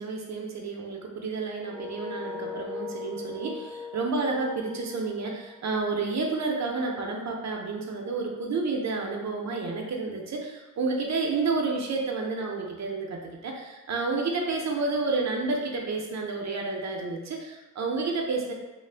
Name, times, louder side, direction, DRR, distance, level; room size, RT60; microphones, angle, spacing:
voice 1, 0.0-18.5, right 3 dB, 55° right, 0 dB, 0.5 m, -30 dB
sound 1, 1.6-6.5, left 4 dB, 5° left, 0.3 m, -40 dB
2.5 x 2.1 x 3.2 m, 1.1 s
wide cardioid pair, 115°, 33 cm